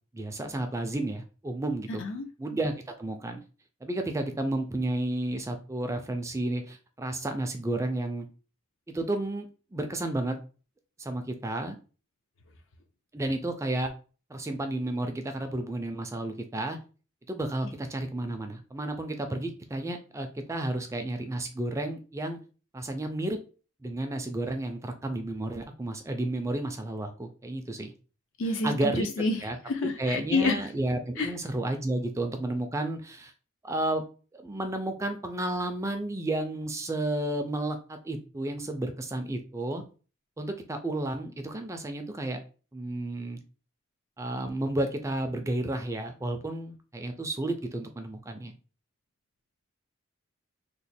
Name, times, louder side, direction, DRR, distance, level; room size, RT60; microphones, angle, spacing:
voice 1, 0.1-2.0 2.4-2.7 3.0-3.4 3.8-8.3 8.9-10.4 11.0-11.8 13.1-13.9 14.3-16.8 17.3-22.4 22.7-23.4 23.8-27.9 28.6-29.1 29.4-29.6 30.0-33.3 33.6-34.0 34.4-39.8 40.4-42.4 42.7-43.4 44.2-48.5, right 1 dB, 15° right, 6 dB, 0.3 m, -32 dB
voice 2, 28.4-29.4 29.7-30.6 31.2-31.3, left 3 dB, 65° left, 6 dB, 0.6 m, -28 dB
3.0 x 2.2 x 4.1 m, 0.36 s
head